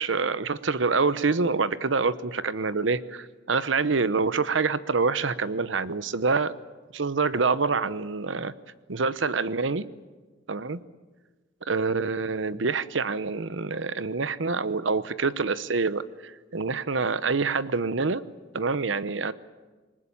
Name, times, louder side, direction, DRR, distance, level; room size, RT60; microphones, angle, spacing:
voice 1, 0.0-6.5 6.9-8.5 8.9-9.9 10.5-10.8 11.7-18.2 18.5-19.3, right 4 dB, 75° right, 15 dB, 0.9 m, -26 dB
26.5 x 20.0 x 8.8 m, 1.3 s
head